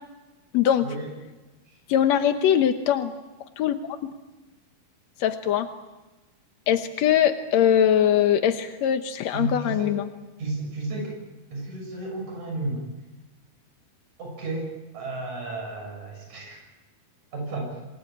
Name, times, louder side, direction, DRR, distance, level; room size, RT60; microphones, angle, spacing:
voice 1, 0.5-0.9 1.9-3.1 3.6-3.7 5.2-5.7 6.7-10.1, left 10 dB, 70° left, 7 dB, 1.7 m, -21 dB
voice 2, 9.3-10.0 10.4-11.2 11.5-12.8 14.2-14.7 14.9-16.6 17.3-17.8, right 2 dB, 50° right, 1 dB, 8.0 m, -32 dB
28.0 x 20.0 x 8.8 m, 1.2 s
omnidirectional pair, 4.4 m